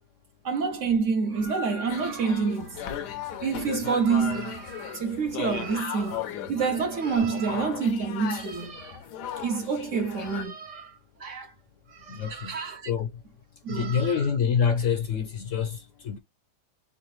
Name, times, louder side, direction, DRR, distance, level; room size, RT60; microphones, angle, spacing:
voice 1, 0.4-2.8 3.4-6.2 6.5-9.0 9.4-11.5 11.9-12.9 13.6-14.3, right 5 dB, 65° right, 0.8 m, -28 dB
sound 1, 1.9-10.4, left 9 dB, 90° left, 1.3 m, -37 dB
voice 2, 12.1-12.6 12.9-13.1 13.7-16.2, left 7 dB, 70° left, 0.8 m, -26 dB
3.7 x 3.4 x 3.0 m
omnidirectional pair, 1.7 m